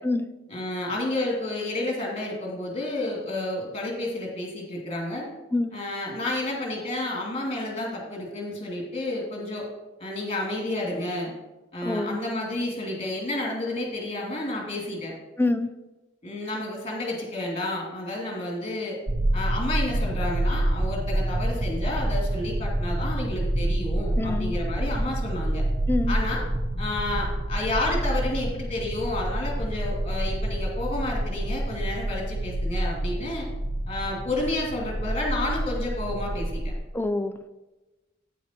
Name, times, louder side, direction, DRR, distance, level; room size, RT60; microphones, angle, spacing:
voice 1, 0.5-5.3 5.7-9.6 10.0-11.3 11.7-15.1 16.2-19.0 19.3-25.6 26.1-26.4 26.8-33.5 33.9-36.7, left 2 dB, 30° left, -1 dB, 2.6 m, -30 dB
voice 2, 11.8-12.2 15.4-15.7 24.2-24.6 25.9-26.2 36.9-37.5, left 2 dB, 10° left, 8 dB, 0.5 m, -26 dB
sound 1, 19.1-36.7, right 1 dB, 30° right, 0.7 m, -28 dB
8.9 x 8.3 x 4.5 m, 1.1 s
head